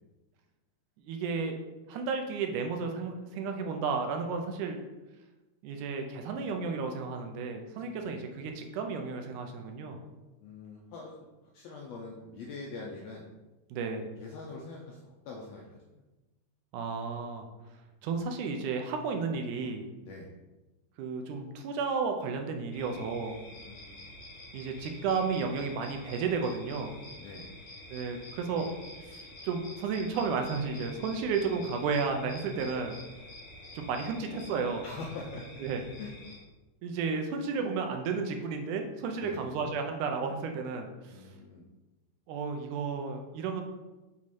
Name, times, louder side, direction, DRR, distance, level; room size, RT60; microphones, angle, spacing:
voice 1, 1.0-1.5 1.9-4.8 5.6-10.0 13.7-14.1 16.7-17.5 18.0-19.9 21.0-23.4 24.5-26.9 27.9-28.7 29.0-33.0 33.7-34.8 35.6-35.8 36.8-41.3 42.3-43.6, right 5 dB, 80° right, 4 dB, 2.1 m, -33 dB
voice 2, 10.4-11.3 11.5-13.3 14.2-15.6 15.9-16.0 20.0-20.3 23.5-24.0 27.1-27.5 34.8-35.5 36.0-36.1 39.2-39.5 41.1-41.6, left 3 dB, 80° left, -1 dB, 1.5 m, -44 dB
sound 1, 22.7-36.4, left 1 dB, 50° left, 1.9 m, -48 dB
6.3 x 3.6 x 4.2 m, 1.1 s
omnidirectional pair, 3.7 m